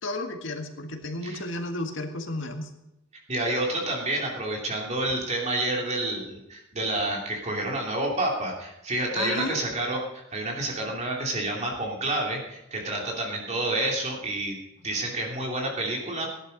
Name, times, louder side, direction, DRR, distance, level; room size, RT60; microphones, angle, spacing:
voice 1, 0.0-2.7 9.2-9.6, left 2 dB, 65° left, 4 dB, 2.0 m, -32 dB
voice 2, 3.3-14.6 14.8-16.3, right 2 dB, 35° right, 0 dB, 2.9 m, -29 dB
17.5 x 11.0 x 5.3 m, 0.89 s
head